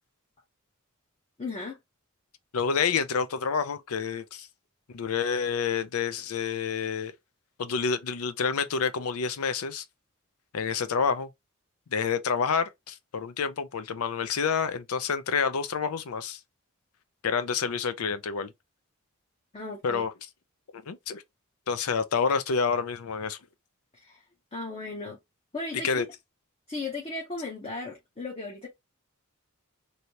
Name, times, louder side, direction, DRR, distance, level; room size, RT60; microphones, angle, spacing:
voice 1, 1.4-1.8 19.5-20.0 23.9-24.2 24.5-25.2 25.5-26.0 26.7-28.7, left 3 dB, 30° left, 0.8 m, -36 dB
voice 2, 2.5-4.5 4.9-7.1 7.6-9.8 10.5-11.3 11.9-16.4 17.2-18.5 19.8-20.1 20.7-21.2 21.7-23.4 25.8-26.1, left 6 dB, 75° left, 0.5 m, -28 dB
3.2 x 2.7 x 2.8 m
head